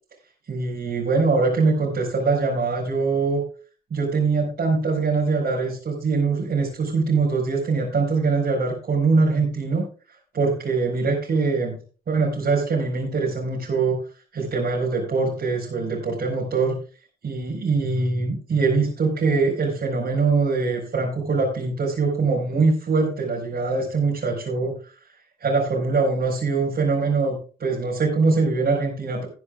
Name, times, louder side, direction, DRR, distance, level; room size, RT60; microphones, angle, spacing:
voice 1, 0.5-3.4 3.9-9.8 10.3-11.8 12.1-14.0 14.3-16.8 17.2-25.0 25.4-29.3, right 4 dB, 50° right, -5 dB, 4.9 m, -23 dB
20.5 x 9.7 x 2.4 m, 0.38 s
hypercardioid pair, 40°, 21 cm